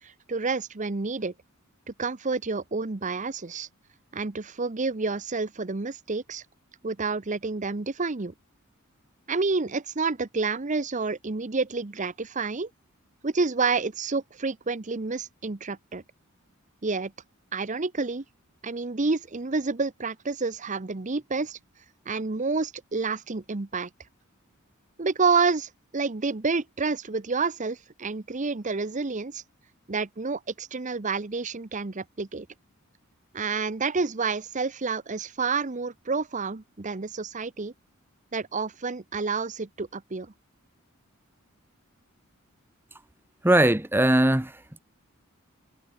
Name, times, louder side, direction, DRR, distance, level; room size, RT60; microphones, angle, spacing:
voice 1, 0.0-1.3 1.9-3.7 4.1-6.4 6.8-8.3 9.3-12.7 13.2-16.0 16.8-17.1 17.5-18.2 18.6-21.6 22.1-23.9 25.0-29.4 29.9-32.5 33.3-37.7 38.3-40.3, right 4 dB, 35° right, 0.8 m, -29 dB
voice 2, 43.4-44.5, right 1 dB, 10° right, 0.9 m, -20 dB
head